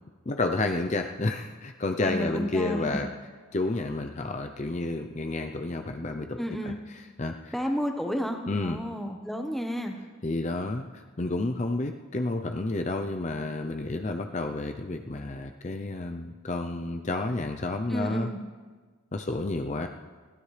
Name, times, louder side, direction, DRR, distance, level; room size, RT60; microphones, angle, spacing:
voice 1, 0.3-3.1 3.5-7.5 8.5-8.8 10.2-18.3 19.1-19.9, left 2 dB, 35° left, 5 dB, 0.5 m, -30 dB
voice 2, 2.0-3.0 6.4-6.8 7.5-10.0 17.9-18.4, equal, ahead, 3 dB, 1.1 m, -31 dB
22.0 x 17.0 x 3.3 m, 1.4 s
head